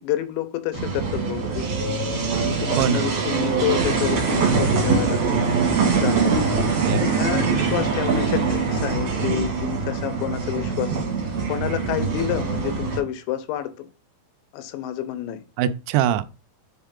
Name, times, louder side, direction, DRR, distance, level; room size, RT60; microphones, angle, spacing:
voice 1, 0.0-1.7 2.0-2.1 2.4-5.2 5.9-6.4 7.0-13.9 14.5-15.4, left 12 dB, 85° left, 2.9 m, -29 dB
sound 1, 0.7-13.0, right 4 dB, 45° right, 2.7 m, -23 dB
voice 2, 2.8-3.1 6.8-7.8 15.6-16.2, right 11 dB, 85° right, 2.9 m, -24 dB
7.5 x 4.4 x 3.7 m
omnidirectional pair, 5.2 m